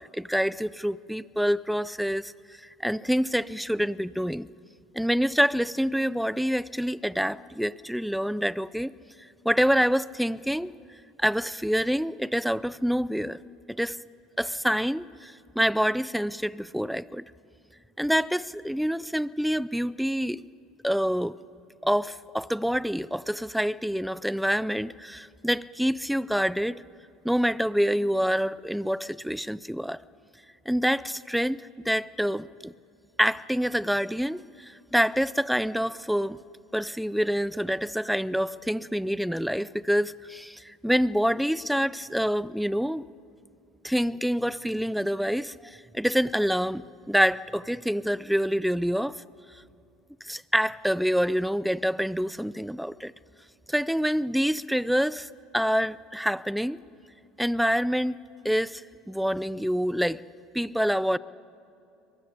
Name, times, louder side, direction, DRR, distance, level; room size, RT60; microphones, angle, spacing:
voice 1, 0.0-2.3 2.6-4.5 4.9-8.9 9.4-10.7 11.2-13.4 13.7-14.0 14.4-17.2 18.0-20.4 20.8-21.3 21.8-26.8 27.2-30.0 30.7-32.7 33.2-36.4 36.7-43.0 43.8-49.2 50.2-53.1 53.7-56.8 57.4-58.2 58.4-58.8 59.1-60.2 60.5-61.2, equal, ahead, 21 dB, 0.5 m, -26 dB
22.5 x 13.5 x 10.0 m, 2.7 s
hypercardioid pair, 85°, 0 cm